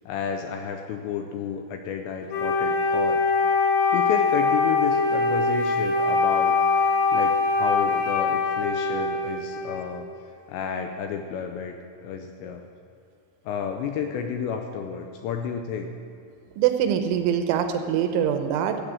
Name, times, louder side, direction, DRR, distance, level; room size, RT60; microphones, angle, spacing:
voice 1, 0.1-3.2 3.9-6.8 7.1-10.1 10.5-11.8 12.0-12.6 13.5-15.9, left 7 dB, 80° left, 5 dB, 2.6 m, -31 dB
Wind instrument woodwind instrument, 2.3-10.0, left 4 dB, 65° left, 3.1 m, -23 dB
voice 2, 16.6-18.8, right 9 dB, 80° right, 7 dB, 3.1 m, -23 dB
13.5 x 8.4 x 6.3 m, 2.5 s
omnidirectional pair, 5.6 m